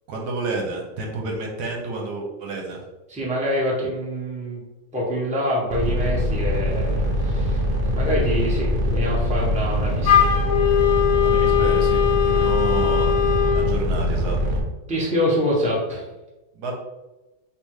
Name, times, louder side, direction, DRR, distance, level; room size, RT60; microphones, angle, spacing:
voice 1, 0.1-2.8 11.2-13.1 13.5-14.4 16.5-16.7, right 3 dB, 75° right, 1 dB, 1.3 m, -30 dB
voice 2, 3.1-4.6 4.9-10.3 14.9-16.0, equal, 5° right, -6 dB, 1.0 m, -25 dB
sound 1, 5.7-14.6, equal, 45° right, 0.9 m, -23 dB
Wind instrument woodwind instrument, 10.0-13.7, left 10 dB, 65° left, 1.0 m, -20 dB
3.5 x 2.8 x 4.6 m, 1.1 s
omnidirectional pair, 1.8 m